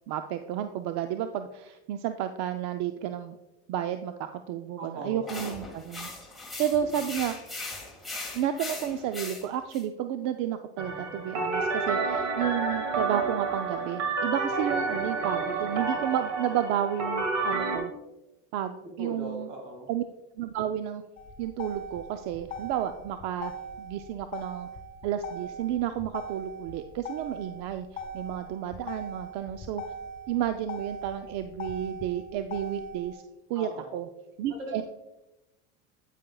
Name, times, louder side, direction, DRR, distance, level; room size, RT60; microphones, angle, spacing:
voice 1, 0.1-3.4 3.7-6.1 6.6-7.4 8.3-17.9 18.5-19.5 19.9-20.0 20.4-21.0 21.4-23.5 23.8-24.7 25.0-29.8 30.3-33.2 33.5-34.1 34.4-34.8, right 10 dB, 55° right, 8 dB, 0.5 m, -31 dB
voice 2, 4.8-5.3 6.8-7.0 19.0-19.9 33.5-33.9 34.6-34.8, right 1 dB, 70° right, 2 dB, 3.0 m, -39 dB
sound 1, 5.3-9.8, left 2 dB, ahead, 1.7 m, -39 dB
sound 2, 10.8-17.8, right 4 dB, 85° right, 1.9 m, -29 dB
Motor vehicle (road), 21.2-33.1, equal, 25° left, 1.8 m, -41 dB
9.1 x 8.6 x 2.3 m, 0.98 s
supercardioid pair, 135°, 35 cm